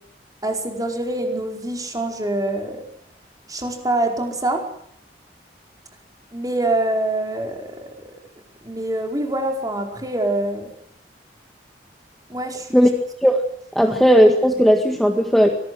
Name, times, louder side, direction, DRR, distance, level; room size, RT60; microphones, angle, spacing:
voice 1, 0.4-2.8 3.5-4.6 6.3-7.9 8.6-10.7 12.3-12.8 13.8-14.0, right 1 dB, 20° right, 3 dB, 4.9 m, -25 dB
voice 2, 13.7-15.5, equal, ahead, 4 dB, 1.8 m, -15 dB
26.0 x 19.5 x 7.8 m, 0.70 s
head